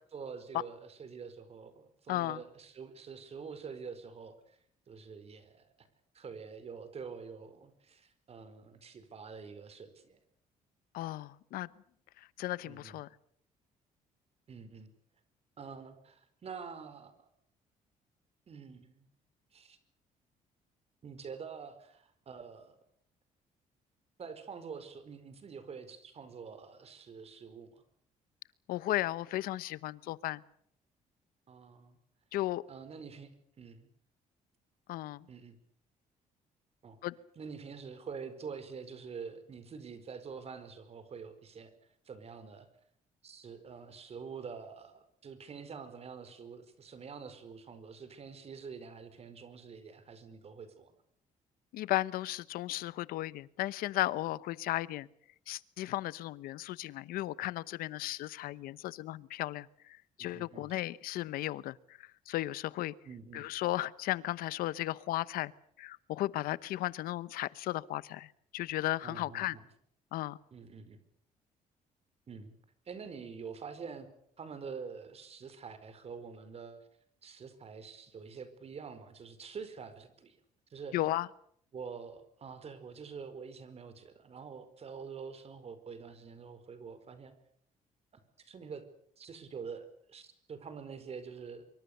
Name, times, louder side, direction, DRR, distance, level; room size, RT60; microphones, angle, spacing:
voice 1, 0.1-4.6 4.9-5.9 6.1-10.2 12.6-13.0 14.5-14.9 15.6-17.1 18.5-19.0 19.5-19.8 21.0-22.8 24.2-27.8 31.5-32.0 32.7-33.3 33.6-33.9 35.3-35.6 36.8-37.0 37.3-41.7 42.0-42.7 43.2-50.9 60.2-60.8 63.0-63.5 69.0-69.7 70.5-71.0 72.3-72.5 72.8-74.1 74.4-76.8 77.2-80.4 80.7-81.0 81.7-87.3 88.1-88.8 89.2-91.6, right 5 dB, 45° right, 11 dB, 4.9 m, -46 dB
voice 2, 2.1-2.4 10.9-11.7 12.4-13.1 28.7-30.4 32.3-32.6 34.9-35.2 37.0-37.1 51.7-55.1 55.5-62.9 63.3-65.5 65.8-69.6 70.1-70.4 80.9-81.3, left 15 dB, 90° left, 18 dB, 1.0 m, -35 dB
25.0 x 24.5 x 6.8 m, 0.66 s
cardioid pair, 110°, 15 cm